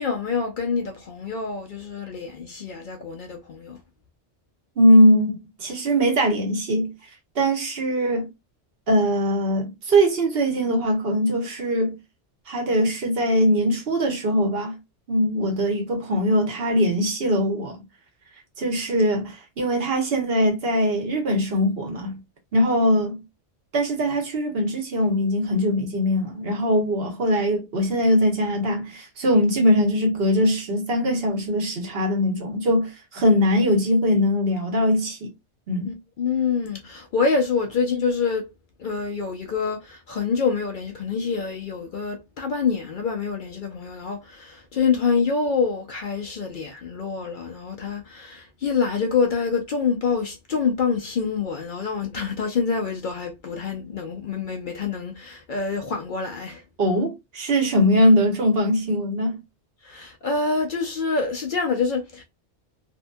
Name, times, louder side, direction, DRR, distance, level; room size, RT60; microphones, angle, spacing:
voice 1, 0.0-3.8 35.8-38.5 38.8-56.6 59.8-62.2, left 5 dB, 60° left, 0.6 m, -26 dB
voice 2, 4.8-6.9 7.3-8.3 8.9-11.9 12.5-14.7 15.1-17.8 18.6-22.2 22.5-23.2 23.7-35.3 35.7-35.9 56.8-59.4, equal, 60° right, 1.1 m, -21 dB
2.7 x 2.6 x 2.2 m
omnidirectional pair, 1.2 m